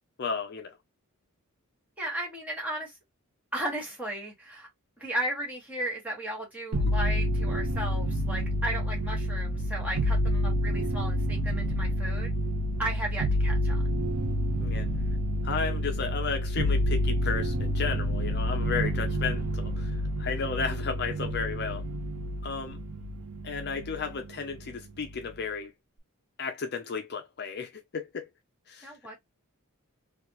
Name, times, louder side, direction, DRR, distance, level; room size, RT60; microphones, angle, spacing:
voice 1, 0.2-0.8 14.6-14.9 15.4-19.9 20.2-21.8 22.4-22.8 23.4-25.7 26.4-28.3 28.7-28.9, left 5 dB, 50° left, 0.5 m, -33 dB
voice 2, 2.0-2.9 3.5-4.7 5.0-12.3 12.8-13.8 28.8-29.3, right 1 dB, 5° right, 1.5 m, -35 dB
sound 1, 6.7-24.2 24.5-25.3, equal, 80° right, 0.7 m, -29 dB
3.3 x 2.4 x 2.9 m
head